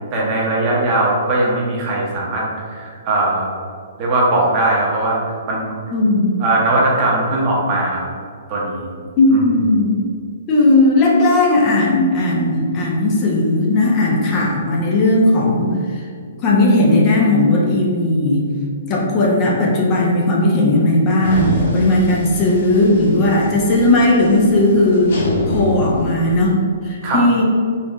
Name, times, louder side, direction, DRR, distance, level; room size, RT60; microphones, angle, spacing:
voice 1, 0.1-3.5 4.0-5.2 5.5-5.7 6.4-8.0 8.5-8.8 9.3-9.4 27.0-27.2, right 2 dB, 35° right, -4 dB, 0.9 m, -19 dB
voice 2, 5.9-6.3 9.2-10.0 10.5-16.0 16.4-18.5 18.9-26.6 26.8-27.4, left 2 dB, 30° left, -3 dB, 0.7 m, -16 dB
sound 1, 21.2-26.5, left 2 dB, 65° left, 0.8 m, -26 dB
4.2 x 2.4 x 3.0 m, 2.1 s
hypercardioid pair, 135°, 0 cm